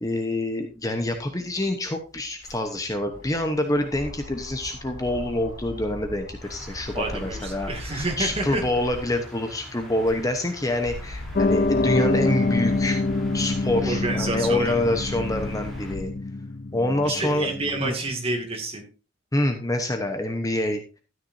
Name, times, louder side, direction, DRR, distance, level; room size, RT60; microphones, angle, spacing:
voice 1, 0.0-13.0 13.3-16.1 16.7-17.5 17.8-18.0 19.3-20.8, left 1 dB, 15° left, 5 dB, 0.9 m, -26 dB
sound 1, 1.1-1.2 1.5-9.3 9.8-16.3 16.8-17.9, left 1 dB, 75° left, 3.8 m, -40 dB
sound 2, 6.4-15.9, equal, ahead, 3.4 m, -45 dB
voice 2, 6.9-8.6 13.8-15.0 17.0-18.9, right 2 dB, 30° right, 2 dB, 2.3 m, -29 dB
Piano, 11.4-17.9, left 2 dB, 40° left, 0.5 m, -26 dB
13.0 x 9.4 x 2.7 m, 0.34 s
head